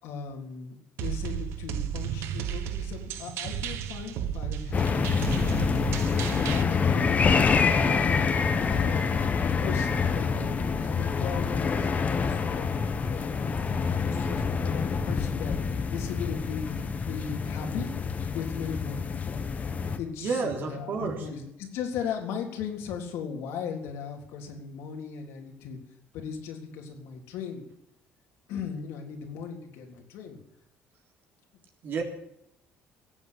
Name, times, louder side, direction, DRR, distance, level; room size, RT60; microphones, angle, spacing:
voice 1, 0.0-5.4 6.3-8.3 8.7-9.0 9.4-13.6 14.0-17.9 18.3-19.1 20.0-25.8 26.1-27.7 28.5-30.4, left 6 dB, 80° left, 1 dB, 3.6 m, -37 dB
sound 1, 1.0-6.6, right 9 dB, 75° right, 1.3 m, -33 dB
sound 2, 4.7-20.0, left 5 dB, 35° left, 1.6 m, -26 dB
voice 2, 20.2-21.2 31.8-32.0, right 5 dB, 50° right, 1 dB, 3.6 m, -30 dB
17.0 x 7.7 x 8.4 m, 0.80 s
cardioid pair, 110°, 4 cm